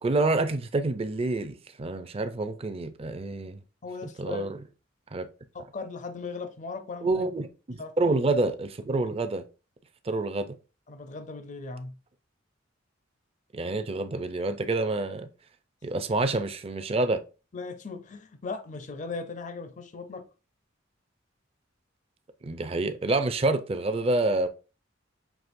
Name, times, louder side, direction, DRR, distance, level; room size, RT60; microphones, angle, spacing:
voice 1, 0.0-3.6 4.2-4.6 5.1-5.3 7.0-9.4 10.0-10.5 13.5-15.3 15.8-17.2 22.4-24.5, right 2 dB, 30° right, 0.5 m, -27 dB
voice 2, 3.8-4.5 5.5-7.2 7.8-8.2 10.9-11.9 17.5-20.2, left 4 dB, 40° left, 0.5 m, -38 dB
6.0 x 2.8 x 2.5 m
head